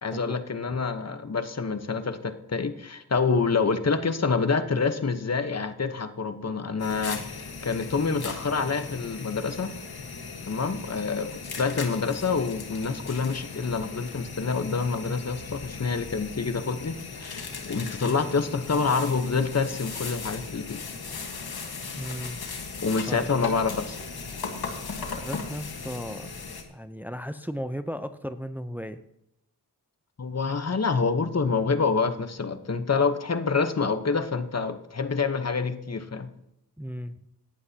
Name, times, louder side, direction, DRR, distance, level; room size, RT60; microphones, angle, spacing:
voice 1, 0.0-9.7 10.5-20.8 22.8-24.0 30.2-36.3, left 4 dB, 45° left, 9 dB, 1.1 m, -27 dB
sound 1, 6.8-26.6, left 4 dB, 80° left, 1.5 m, -38 dB
voice 2, 21.9-22.4 23.1-23.2 25.1-26.3 26.7-29.0 36.8-37.2, equal, 5° right, 10 dB, 0.6 m, -35 dB
17.5 x 11.0 x 2.9 m, 0.81 s
cardioid pair, 40°, 37 cm